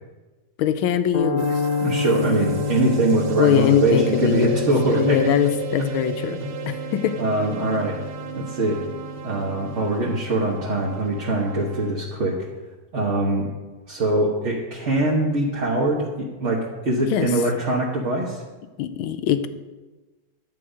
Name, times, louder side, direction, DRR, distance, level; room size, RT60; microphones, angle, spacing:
voice 1, 0.6-1.6 3.4-6.4 6.7-7.2 17.1-17.3 18.8-19.5, left 9 dB, 80° left, 10 dB, 1.4 m, -22 dB
sound 1, 1.1-9.5, left 5 dB, 45° left, 0.5 m, -29 dB
sound 2, 1.4-11.9, right 9 dB, 85° right, 1.9 m, -35 dB
voice 2, 1.8-5.3 7.2-8.0 8.4-8.8 9.2-12.4 12.9-13.5 13.9-18.4, right 2 dB, 40° right, -3 dB, 1.1 m, -23 dB
11.0 x 7.6 x 5.0 m, 1.2 s
omnidirectional pair, 2.3 m